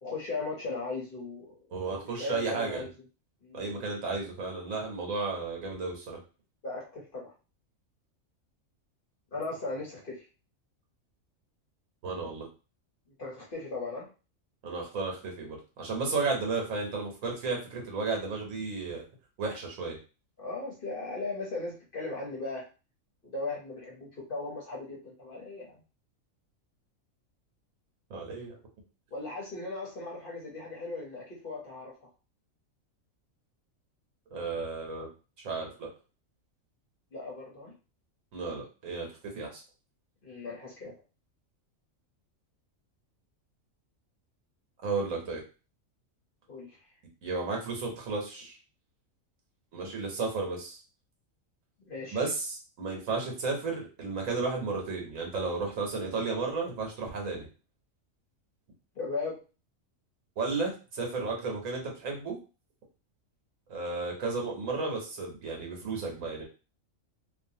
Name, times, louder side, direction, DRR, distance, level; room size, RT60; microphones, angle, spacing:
voice 1, 0.0-1.6 2.1-2.9 3.4-3.8 6.6-7.3 9.3-10.3 13.1-14.1 20.4-22.6 23.2-25.8 29.1-32.1 37.1-37.7 40.2-40.9 46.5-46.9 51.8-52.2 58.9-59.3, left 3 dB, 45° left, -3 dB, 1.0 m, -37 dB
voice 2, 1.7-2.8 3.5-6.2 12.0-12.5 14.6-19.0 19.4-20.0 28.1-28.6 34.3-35.1 35.4-35.9 38.3-39.1 39.3-39.6 44.8-45.4 47.2-48.6 49.7-50.8 52.1-57.4 60.4-62.4 63.7-66.4, right 3 dB, 75° right, 1 dB, 1.3 m, -33 dB
2.7 x 2.4 x 2.7 m, 0.33 s
omnidirectional pair, 1.4 m